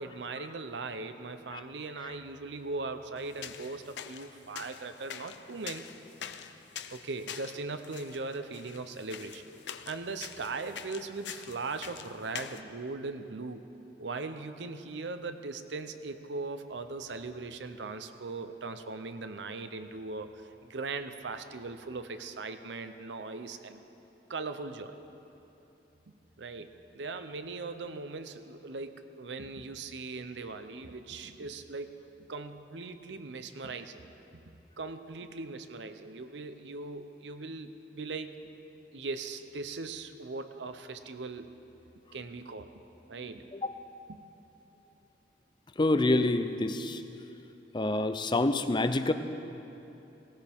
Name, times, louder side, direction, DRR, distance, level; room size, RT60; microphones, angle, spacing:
voice 1, 0.0-5.9 6.9-9.4 9.9-13.7 14.0-20.3 20.6-23.8 24.3-25.0 26.4-32.0 32.3-34.1 34.8-38.4 38.9-41.6 42.1-42.7 43.1-43.5 44.1-44.2, right 3 dB, 90° right, 9 dB, 0.7 m, -39 dB
sound 1, 3.2-12.6, left 8 dB, 80° left, 0.6 m, -45 dB
voice 2, 45.8-47.0 47.7-49.1, left 2 dB, 25° left, 9 dB, 0.6 m, -27 dB
18.5 x 17.5 x 3.6 m, 2.9 s
head